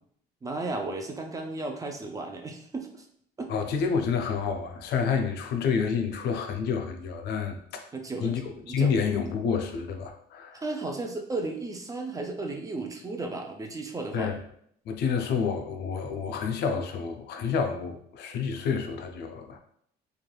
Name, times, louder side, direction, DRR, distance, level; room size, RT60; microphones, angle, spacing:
voice 1, 0.4-3.0 3.4-3.5 7.9-8.9 10.5-14.3, right 3 dB, 20° right, 3 dB, 0.4 m, -34 dB
voice 2, 3.5-7.8 8.2-8.4 8.7-10.6 14.1-14.4 14.9-19.6, left 6 dB, 70° left, 5 dB, 0.4 m, -29 dB
3.1 x 2.3 x 2.3 m, 0.67 s
cardioid pair, 115°, 18 cm